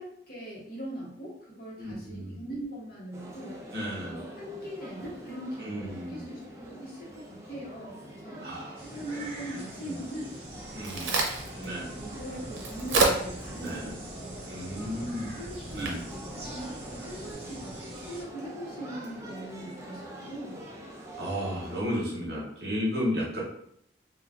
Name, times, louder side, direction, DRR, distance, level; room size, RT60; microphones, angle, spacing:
voice 1, 0.0-3.6 4.0-8.6 8.9-10.3 10.7-11.2 11.6-14.4 14.7-20.6, right 1 dB, 55° left, -4 dB, 0.9 m, -41 dB
voice 2, 1.8-2.4 3.7-4.2 5.6-6.3 8.4-8.9 9.1-9.2 9.8-10.0 10.7-11.1 11.6-11.9 13.6-13.9 14.5-15.4 15.7-16.0 21.2-23.4, equal, 60° right, -4 dB, 1.1 m, -33 dB
sound 1, 3.1-21.8, right 1 dB, 15° right, 0.4 m, -45 dB
sound 2, 8.8-18.2, right 1 dB, 35° right, 0.9 m, -44 dB
Crack, 10.4-17.3, right 3 dB, 90° right, 0.6 m, -33 dB
3.4 x 2.2 x 2.4 m, 0.70 s
head